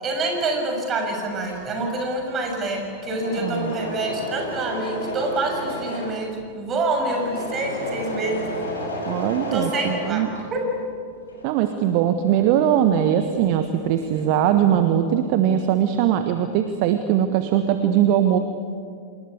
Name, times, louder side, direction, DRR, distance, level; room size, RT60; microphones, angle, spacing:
voice 1, 0.0-8.4 9.5-10.2 10.5-10.6, right 2 dB, 25° right, 2 dB, 6.8 m, -26 dB
Engine / Mechanisms, 1.2-10.8 11.2-13.5 13.8-14.5, left 1 dB, 75° left, 7.3 m, -33 dB
voice 2, 3.4-3.7 9.1-10.3 11.4-18.4, right 10 dB, 45° right, 8 dB, 1.3 m, -20 dB
27.0 x 20.5 x 8.4 m, 2.2 s
figure-of-eight pair, 90°, 0 cm